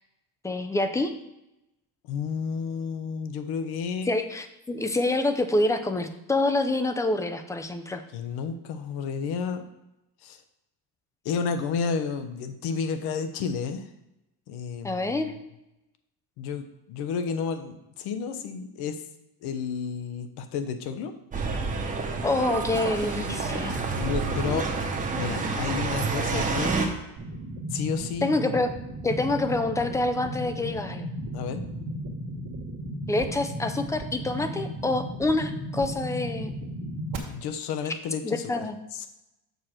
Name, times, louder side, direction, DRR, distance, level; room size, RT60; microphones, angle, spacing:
voice 1, 0.4-1.1 4.1-8.0 14.8-15.3 22.2-23.8 28.2-28.7 29.0-31.1 33.1-36.5 38.2-38.8, left 2 dB, 10° left, 7 dB, 0.4 m, -26 dB
voice 2, 2.1-4.1 8.1-9.7 10.2-10.4 11.2-13.9 14.5-15.3 16.4-19.0 19.4-21.1 24.0-24.7 25.1-26.7 27.7-28.3 31.3-31.6 37.3-38.6 38.9-39.1, left 6 dB, 70° left, 9 dB, 1.0 m, -31 dB
sound 1, 21.3-26.9, right 4 dB, 20° right, 1.0 m, -28 dB
sound 2, 27.2-37.2, equal, 55° right, 1.5 m, -35 dB
6.7 x 4.3 x 6.4 m, 0.91 s
cardioid pair, 155°, 40 cm